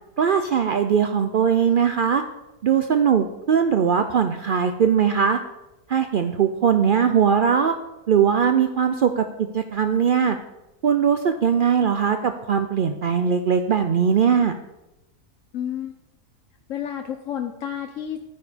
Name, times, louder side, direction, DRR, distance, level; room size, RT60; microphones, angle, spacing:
voice 1, 0.2-2.2 2.6-5.4 5.9-7.7 8.1-10.4 10.8-14.5, right 7 dB, 70° right, 8 dB, 0.5 m, -20 dB
voice 2, 15.5-15.9 16.7-18.2, left 9 dB, 60° left, 5 dB, 1.1 m, -30 dB
11.5 x 9.7 x 5.0 m, 0.96 s
omnidirectional pair, 1.6 m